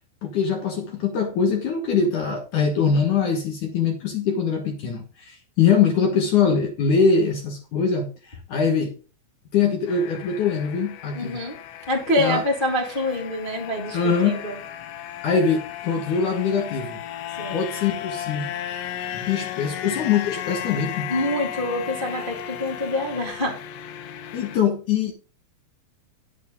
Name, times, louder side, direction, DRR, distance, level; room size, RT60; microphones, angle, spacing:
voice 1, 0.2-9.0 9.5-11.4 12.2-12.4 13.9-14.4 15.2-17.0 17.5-18.6 19.1-21.1 24.3-25.1, left 6 dB, 60° left, 2.1 m, -23 dB
sound 1, 9.9-24.6, left 10 dB, 80° left, 3.4 m, -35 dB
voice 2, 11.1-11.6 11.9-14.6 17.4-17.6 21.1-23.6, left 1 dB, 30° left, 0.9 m, -26 dB
11.0 x 8.5 x 3.8 m
omnidirectional pair, 5.5 m